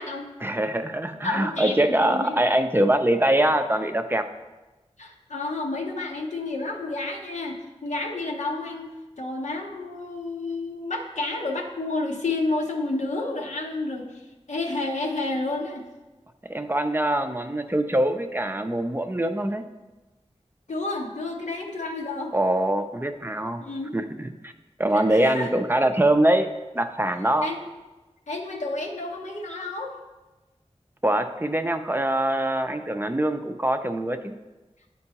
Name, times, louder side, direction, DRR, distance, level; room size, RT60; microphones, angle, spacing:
voice 1, 0.4-4.3 16.5-19.6 22.3-23.6 23.9-24.5 24.8-27.5 31.0-34.4, right 1 dB, 20° right, 7 dB, 0.4 m, -23 dB
voice 2, 1.2-2.3 5.0-8.9 9.2-14.1 14.5-15.8 20.7-22.3 23.6-23.9 24.9-25.5 27.4-27.6 28.3-29.9, left 2 dB, 90° left, 0 dB, 0.8 m, -30 dB
9.6 x 4.5 x 2.9 m, 1.1 s
wide cardioid pair, 65°, 12 cm